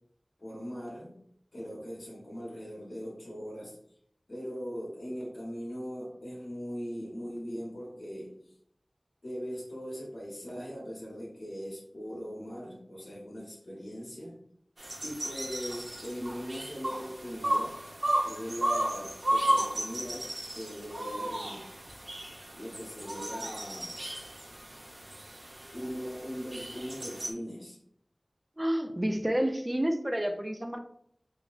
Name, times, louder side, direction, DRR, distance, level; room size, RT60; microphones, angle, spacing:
voice 1, 0.4-1.1 1.5-3.8 4.3-8.5 9.2-14.4 15.0-17.7 18.2-21.7 22.5-24.0 25.7-27.8, equal, 65° left, -6 dB, 1.3 m, -40 dB
sound 1, 14.8-27.3, right 1 dB, 60° right, 0.7 m, -34 dB
voice 2, 28.6-30.8, right 1 dB, 20° right, 5 dB, 0.5 m, -29 dB
4.7 x 2.0 x 2.6 m, 0.66 s
wide cardioid pair, 50°, 0 cm